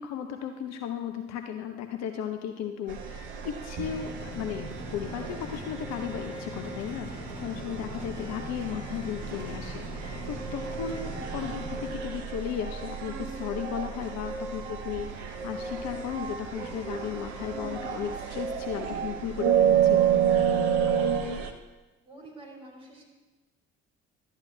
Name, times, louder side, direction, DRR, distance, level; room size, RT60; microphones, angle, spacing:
voice 1, 0.0-20.0, left 8 dB, 50° left, 6 dB, 0.7 m, -35 dB
sound 1, 2.9-21.5, right 8 dB, 65° right, 0.8 m, -30 dB
sound 2, 3.8-11.9, left 1 dB, 70° left, 2.2 m, -41 dB
sound 3, 12.4-18.3, left 1 dB, 90° left, 1.8 m, -54 dB
voice 2, 21.0-21.3 22.0-23.0, right 2 dB, 15° right, -3 dB, 3.5 m, -47 dB
12.0 x 8.3 x 3.2 m, 1.2 s
figure-of-eight pair, 50°, 35 cm